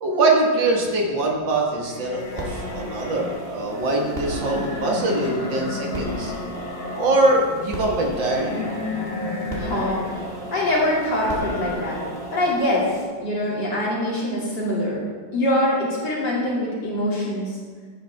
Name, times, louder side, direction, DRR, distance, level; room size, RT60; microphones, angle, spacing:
voice 1, 0.0-6.3 7.0-8.7, right 2 dB, 75° right, 0 dB, 2.2 m, -23 dB
sound 1, 0.7-11.8, left 2 dB, 35° left, 1.3 m, -34 dB
sound 2, 2.1-13.0, equal, 30° right, 2.1 m, -35 dB
voice 2, 9.6-10.0 10.5-12.0 12.3-12.9 13.2-15.0 15.3-17.6, left 1 dB, 60° left, -6 dB, 3.4 m, -23 dB
11.5 x 9.0 x 3.5 m, 1.5 s
omnidirectional pair, 2.1 m